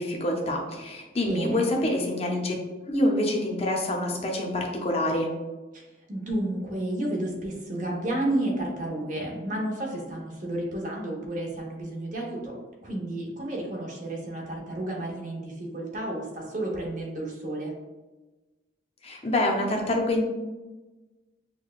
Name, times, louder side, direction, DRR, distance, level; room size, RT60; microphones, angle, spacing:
voice 1, 0.0-2.5 2.9-5.3 19.0-20.2, left 1 dB, 35° left, 1 dB, 0.6 m, -26 dB
voice 2, 1.3-1.6 5.7-12.5 12.8-17.7, right 1 dB, 45° right, -1 dB, 0.8 m, -31 dB
5.8 x 2.2 x 2.3 m, 1.2 s
head